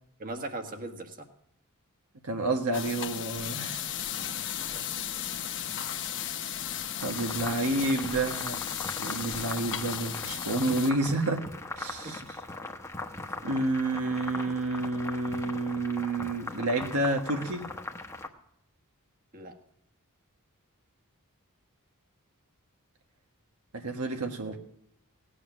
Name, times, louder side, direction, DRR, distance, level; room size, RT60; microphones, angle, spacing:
voice 1, 0.2-1.3 4.1-4.9 12.0-12.1 19.3-19.5, right 2 dB, 40° right, 5 dB, 1.6 m, -40 dB
voice 2, 2.2-3.8 7.0-8.6 9.0-11.4 11.8-12.2 13.4-17.6 23.7-24.6, right 2 dB, 80° right, 3 dB, 1.4 m, -29 dB
sound 1, 2.7-10.9, left 9 dB, 55° left, 1.0 m, -35 dB
sound 2, 7.0-18.3, left 2 dB, 15° left, 1.1 m, -40 dB
17.5 x 9.8 x 6.1 m, 0.74 s
head